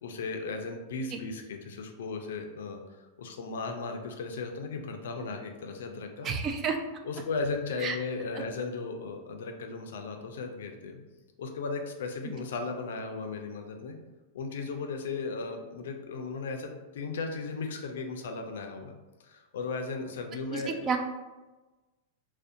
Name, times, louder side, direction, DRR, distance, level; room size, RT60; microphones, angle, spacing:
voice 1, 0.0-6.3 7.0-11.0 11.4-14.0 14.3-18.9 19.2-20.8, left 4 dB, 80° left, 4 dB, 0.4 m, -36 dB
voice 2, 6.2-6.8 7.8-8.0 20.5-21.0, right 6 dB, 30° right, 5 dB, 0.3 m, -30 dB
2.5 x 2.1 x 2.6 m, 1.2 s
hypercardioid pair, 125°, 0 cm